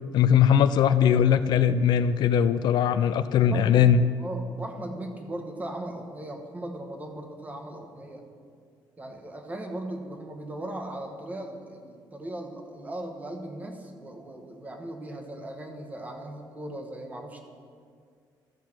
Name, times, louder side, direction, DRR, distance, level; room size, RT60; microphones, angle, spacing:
voice 1, 0.1-4.0, left 8 dB, 65° left, 12 dB, 0.4 m, -20 dB
voice 2, 3.4-3.9 4.2-8.2 9.0-17.4, right 1 dB, 20° right, 3 dB, 1.1 m, -38 dB
13.0 x 4.6 x 5.9 m, 2.2 s
cardioid pair, 140°, 8 cm